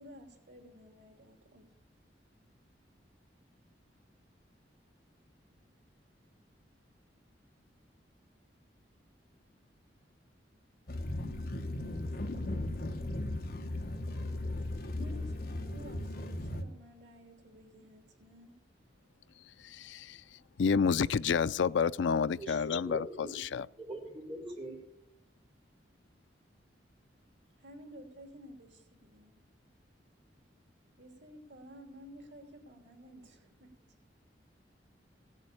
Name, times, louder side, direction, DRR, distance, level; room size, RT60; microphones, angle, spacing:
voice 1, 0.0-1.7 14.6-14.7 15.0-18.6 27.6-29.4 31.0-33.7, equal, 90° right, 3.0 m, -53 dB
sound 1, 10.9-16.6, left 1 dB, 55° left, 1.2 m, -37 dB
voice 2, 19.6-20.2 20.6-23.7, left 6 dB, 90° left, 0.4 m, -29 dB
voice 3, 22.4-23.4 23.8-24.8, right 1 dB, 30° right, 4.8 m, -42 dB
16.5 x 7.5 x 8.4 m
head